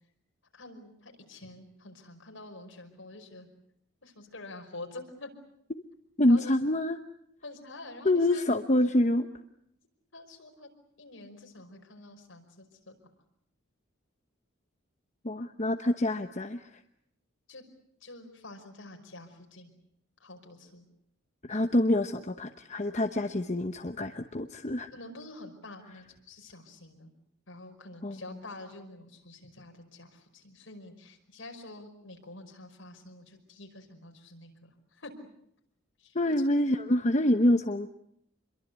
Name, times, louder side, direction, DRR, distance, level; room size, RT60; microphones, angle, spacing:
voice 1, 0.5-3.5 4.0-5.3 6.3-6.6 7.4-8.5 10.1-10.7 11.0-13.0 17.5-17.6 18.0-19.7 20.2-20.9 24.9-27.1 27.5-35.1 36.0-36.3, left 2 dB, 70° left, 3 dB, 5.5 m, -47 dB
voice 2, 6.2-7.0 8.0-9.3 15.2-16.7 21.4-24.9 28.0-28.2 36.1-38.0, left 1 dB, 35° left, 6 dB, 1.0 m, -26 dB
27.0 x 23.0 x 8.2 m, 0.74 s
head